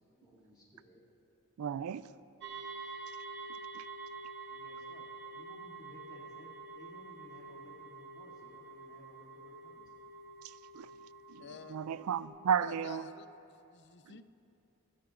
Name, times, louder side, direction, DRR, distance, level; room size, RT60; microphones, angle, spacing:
voice 1, 0.1-1.0 4.5-5.1 5.3-9.9, equal, 20° left, 2.7 m, -58 dB
voice 2, 1.6-2.1 3.7-3.9 10.4-10.9 11.3-13.0, right 8 dB, 70° right, 0.3 m, -34 dB
sound 1, 2.4-12.3, right 4 dB, 55° right, 1.1 m, -47 dB
voice 3, 11.4-11.9 12.6-14.4, left 6 dB, 55° left, 0.5 m, -51 dB
26.5 x 10.0 x 2.5 m
head